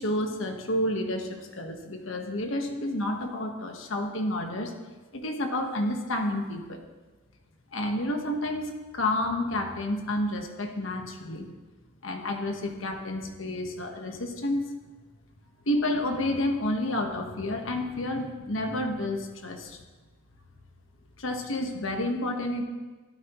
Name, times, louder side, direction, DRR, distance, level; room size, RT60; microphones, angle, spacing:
voice 1, 0.0-4.7 5.1-6.8 7.7-11.5 12.0-14.6 15.7-19.8 21.2-22.6, left 1 dB, 70° left, 4 dB, 1.4 m, -30 dB
13.5 x 12.5 x 3.1 m, 1.3 s
head